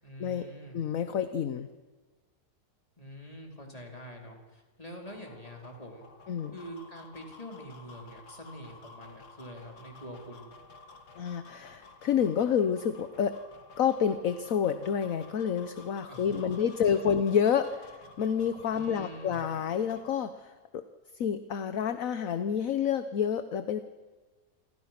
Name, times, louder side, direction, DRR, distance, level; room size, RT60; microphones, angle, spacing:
voice 1, 0.0-0.8 3.0-6.0 6.5-10.5 16.1-17.1 18.7-19.4, equal, 25° left, 1 dB, 4.2 m, -45 dB
voice 2, 0.7-1.7 6.3-6.5 11.2-13.4 13.8-20.8 21.2-23.8, left 8 dB, 60° left, 10 dB, 1.3 m, -29 dB
sound 1, 5.0-20.1, left 3 dB, 90° left, 2.4 m, -52 dB
28.5 x 24.0 x 6.0 m, 1.3 s
omnidirectional pair, 1.6 m